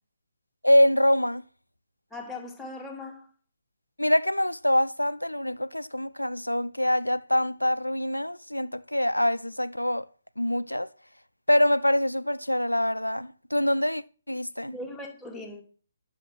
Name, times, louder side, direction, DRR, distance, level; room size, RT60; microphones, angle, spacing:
voice 1, 0.6-1.4 4.0-10.1 10.4-10.9 11.5-14.7, left 1 dB, 85° left, 0.4 m, -24 dB
voice 2, 2.1-3.3 14.7-15.6, left 2 dB, 5° left, 1.7 m, -39 dB
9.8 x 6.5 x 5.9 m
figure-of-eight pair, 135°, 0 cm